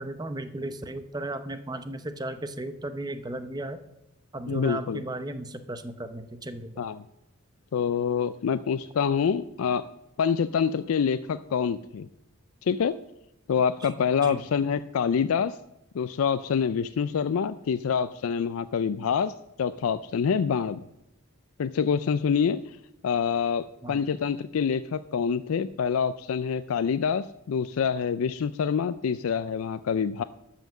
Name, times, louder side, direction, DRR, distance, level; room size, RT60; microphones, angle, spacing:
voice 1, 0.0-3.8 4.3-6.7 13.8-13.9 14.2-14.4 23.8-24.0, right 1 dB, 20° right, 10 dB, 0.7 m, -35 dB
voice 2, 4.5-5.0 6.8-7.0 7.7-9.8 10.2-12.1 12.6-12.9 13.5-15.6 15.9-19.3 19.6-20.8 21.6-22.6 23.0-30.2, left 6 dB, 85° left, 13 dB, 0.4 m, -26 dB
12.5 x 5.8 x 7.3 m, 0.89 s
head